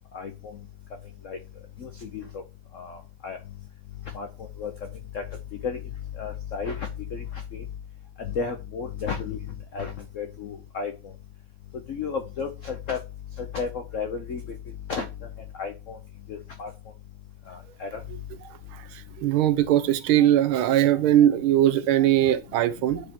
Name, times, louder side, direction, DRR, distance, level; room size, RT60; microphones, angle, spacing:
voice 1, 1.8-2.2 2.7-3.0 3.2-3.4 4.1-4.3 4.6-4.7 5.1-5.2 5.6-5.8 6.2-6.8 7.1-7.2 7.5-7.6 8.2-9.4 9.7-10.9 11.9-13.0 13.5-14.4 14.9-15.1 15.6-16.0 16.3-16.7 17.8-17.9, left 5 dB, 85° left, 0.6 m, -32 dB
voice 2, 19.2-23.0, right 12 dB, 80° right, 1.5 m, -20 dB
9.2 x 5.0 x 2.9 m
omnidirectional pair, 2.4 m